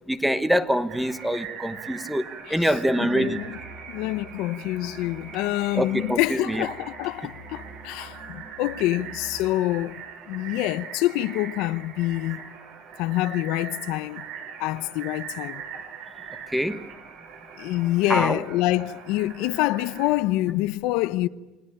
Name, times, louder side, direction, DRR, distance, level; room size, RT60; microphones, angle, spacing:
voice 1, 0.1-3.4 5.7-6.7 16.5-16.9 18.1-18.4, equal, ahead, 1.1 m, -25 dB
sound 1, 0.9-20.2, right 7 dB, 60° right, 5.4 m, -41 dB
voice 2, 3.0-3.6 3.9-12.5 13.0-14.2 14.6-15.6 17.6-21.3, left 16 dB, 70° left, 0.8 m, -26 dB
Musical instrument, 3.3-9.6, right 1 dB, 40° right, 4.0 m, -47 dB
29.5 x 20.0 x 8.9 m
cardioid pair, 155°, 0 cm